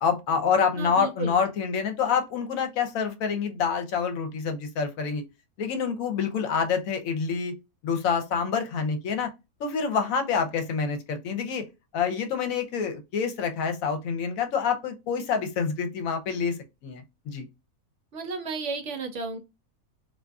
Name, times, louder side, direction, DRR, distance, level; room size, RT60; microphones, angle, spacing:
voice 1, 0.0-5.2 5.6-7.6 7.8-9.3 9.6-11.7 11.9-17.5, left 6 dB, 75° left, 1.0 m, -27 dB
voice 2, 0.8-1.4 18.1-19.4, right 4 dB, 65° right, 0.9 m, -33 dB
2.5 x 2.4 x 2.2 m
omnidirectional pair, 1.5 m